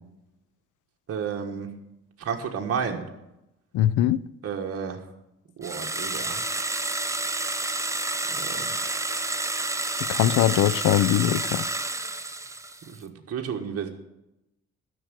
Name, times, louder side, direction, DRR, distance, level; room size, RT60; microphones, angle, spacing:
voice 1, 1.1-1.7 2.2-3.0 4.4-5.0 5.6-6.4 8.4-8.7 12.9-13.9, right 7 dB, 50° right, 1.4 m, -31 dB
voice 2, 3.7-4.2 10.1-11.7, left 13 dB, 85° left, 0.5 m, -21 dB
sound 1, 5.6-12.9, right 2 dB, 10° right, 0.7 m, -29 dB
12.5 x 6.3 x 9.1 m
cardioid pair, 90°, 30 cm